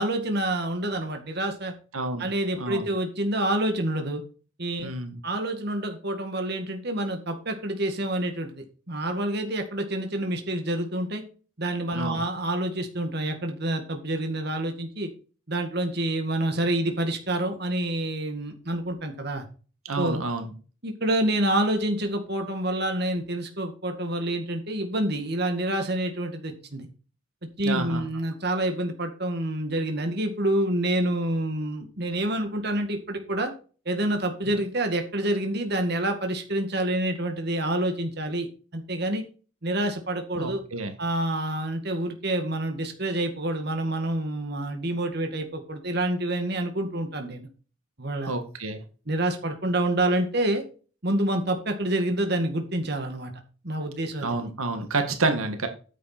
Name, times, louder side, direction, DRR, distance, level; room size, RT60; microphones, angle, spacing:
voice 1, 0.0-1.7 2.2-4.2 4.6-4.9 5.2-11.2 11.6-15.1 15.5-19.5 20.0-20.3 20.8-26.9 27.6-33.5 33.9-38.5 38.7-39.2 39.6-40.6 41.0-47.5 48.0-48.3 49.1-50.6 51.0-53.3 53.6-54.4, right 1 dB, 50° right, 5 dB, 2.0 m, -27 dB
voice 2, 1.9-2.2 2.6-2.9 4.8-5.2 11.9-12.2 19.9-20.5 27.6-28.0 40.4-40.9 48.3-48.8 54.2-55.7, right 3 dB, 90° right, 6 dB, 1.9 m, -29 dB
9.7 x 7.5 x 4.3 m, 0.37 s
head